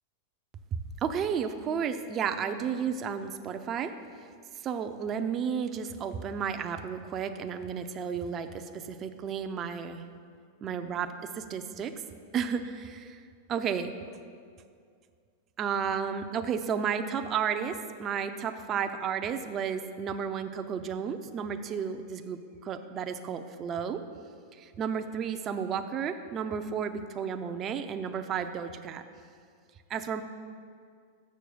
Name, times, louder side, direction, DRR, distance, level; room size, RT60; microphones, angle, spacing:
voice 1, 1.0-3.9 4.6-10.0 10.6-11.9 12.3-13.2 13.5-14.1 15.6-24.0 24.5-29.0 29.9-30.2, right 7 dB, 30° right, 7 dB, 0.5 m, -32 dB
6.4 x 6.3 x 6.9 m, 2.2 s
supercardioid pair, 135°, 0 cm